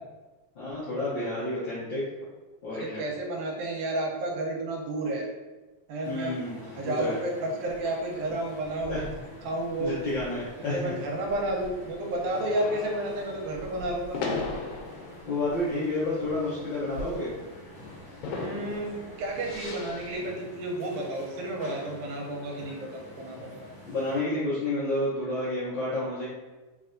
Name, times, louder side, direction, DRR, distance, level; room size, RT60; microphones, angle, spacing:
voice 1, 0.5-2.0 2.6-3.0 6.0-7.2 8.9-9.0 9.8-10.9 15.3-17.3 23.9-26.3, left 2 dB, 70° left, -10 dB, 1.1 m, -30 dB
voice 2, 2.7-5.3 5.9-6.4 6.8-9.1 9.4-9.9 10.7-14.2 18.3-23.7, right 1 dB, 85° right, 0 dB, 2.1 m, -31 dB
sound 1, 6.0-24.3, left 1 dB, 50° left, 1.9 m, -48 dB
sound 2, 7.7-20.3, left 3 dB, 85° left, 2.0 m, -40 dB
4.3 x 3.3 x 2.5 m, 1.2 s
omnidirectional pair, 3.3 m